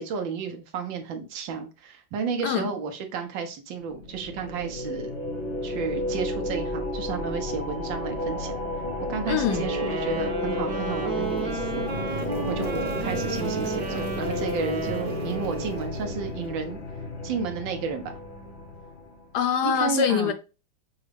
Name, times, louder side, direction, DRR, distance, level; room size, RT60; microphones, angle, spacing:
voice 1, 0.0-5.1 5.6-8.6 9.1-11.8 12.5-16.8 17.2-18.1 19.7-20.3, right 6 dB, 80° right, 1.6 m, -32 dB
voice 2, 2.4-2.7 9.3-9.7 19.3-20.3, left 8 dB, 70° left, 1.1 m, -24 dB
sound 1, 3.9-19.3, left 1 dB, 90° left, 2.0 m, -33 dB
sound 2, 9.5-16.0, right 3 dB, 55° right, 1.4 m, -32 dB
sound 3, 10.7-16.7, right 1 dB, 20° right, 1.1 m, -37 dB
6.3 x 2.4 x 3.3 m
omnidirectional pair, 2.0 m